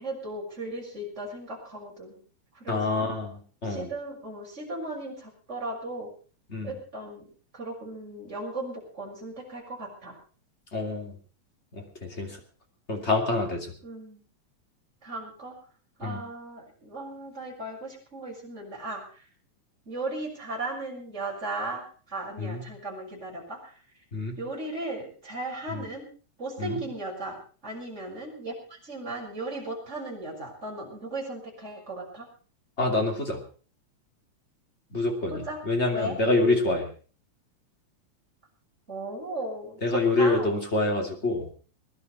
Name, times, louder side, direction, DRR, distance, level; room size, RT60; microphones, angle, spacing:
voice 1, 0.0-2.2 2.5-3.1 3.6-6.1 6.6-7.3 7.5-10.2 13.8-14.2 15.0-15.6 16.0-19.3 19.8-23.8 24.4-26.0 26.4-32.3 35.3-35.6 35.9-36.2 38.9-40.5, right 2 dB, 20° right, -3 dB, 6.6 m, -36 dB
voice 2, 2.7-3.9 6.5-6.7 10.7-11.1 11.7-12.4 12.9-13.7 16.0-16.2 22.4-22.6 24.1-24.4 25.7-25.8 26.6-26.8 32.8-33.4 34.9-36.9 39.8-41.5, left 2 dB, 20° left, 2 dB, 2.8 m, -26 dB
21.5 x 11.5 x 4.7 m, 0.39 s
omnidirectional pair, 3.6 m